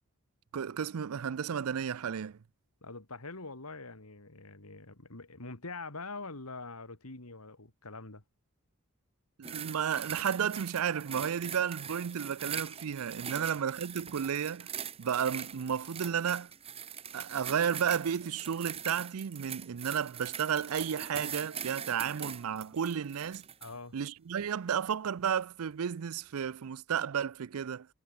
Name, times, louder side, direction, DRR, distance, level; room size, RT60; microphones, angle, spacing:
voice 1, 0.5-2.4 9.4-14.7 15.0-16.5 17.1-23.5 23.9-27.9, right 7 dB, 75° right, 0.5 m, -32 dB
voice 2, 2.8-8.2 13.3-13.5 23.6-23.9, left 3 dB, 85° left, 2.9 m, -44 dB
sound 1, 9.4-23.8 24.4-24.5, right 8 dB, 25° right, 1.4 m, -42 dB
head